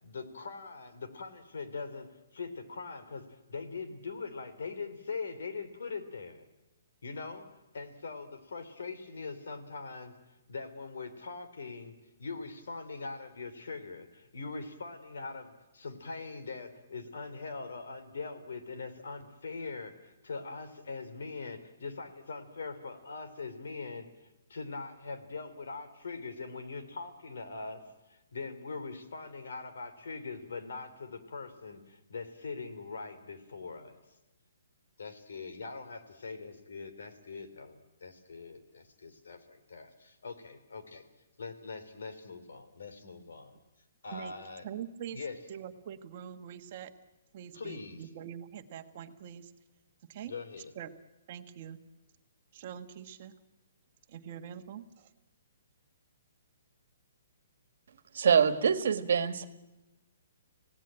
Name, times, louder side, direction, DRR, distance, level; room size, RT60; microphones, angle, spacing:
voice 1, 0.0-6.4 7.0-7.5 7.7-10.2 10.5-34.0 35.0-41.0 41.4-43.5 44.0-44.7 45.1-45.4 47.5-48.1 50.3-50.7, left 4 dB, 80° left, 9 dB, 3.4 m, -42 dB
voice 2, 44.6-45.2 45.5-46.9 47.3-49.5 50.1-50.3 50.7-50.9 51.3-51.8 52.5-53.3 54.1-55.1, right 9 dB, 35° right, 8 dB, 1.4 m, -44 dB
voice 3, 58.1-59.5, right 7 dB, 60° right, 11 dB, 1.7 m, -25 dB
27.0 x 17.5 x 8.9 m, 1.0 s
hypercardioid pair, 170°, 0 cm